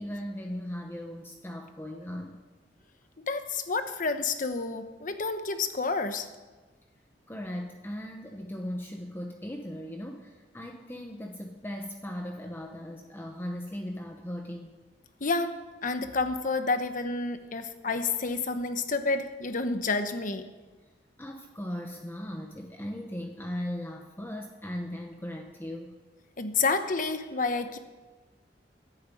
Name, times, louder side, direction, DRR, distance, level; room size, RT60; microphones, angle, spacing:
voice 1, 0.0-2.4 7.3-14.8 21.2-26.0, equal, 15° left, 2 dB, 0.9 m, -38 dB
voice 2, 3.3-6.3 15.2-20.5 26.4-27.8, left 3 dB, 50° left, 9 dB, 1.0 m, -29 dB
11.0 x 8.9 x 8.4 m, 1.3 s
head